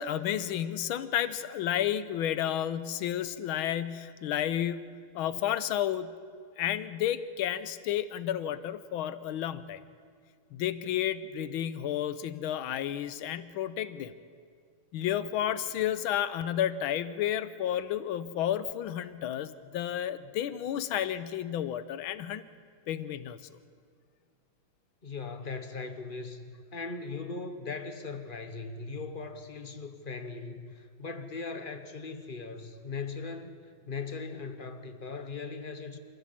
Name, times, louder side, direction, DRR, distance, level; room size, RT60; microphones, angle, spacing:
voice 1, 0.0-4.9 5.1-6.1 6.6-9.8 10.5-14.1 14.9-22.5 22.9-23.4, left 11 dB, 80° left, 14 dB, 1.6 m, -31 dB
voice 2, 25.0-36.0, left 4 dB, 30° left, 8 dB, 1.0 m, -39 dB
26.5 x 15.0 x 7.5 m, 2.1 s
omnidirectional pair, 2.3 m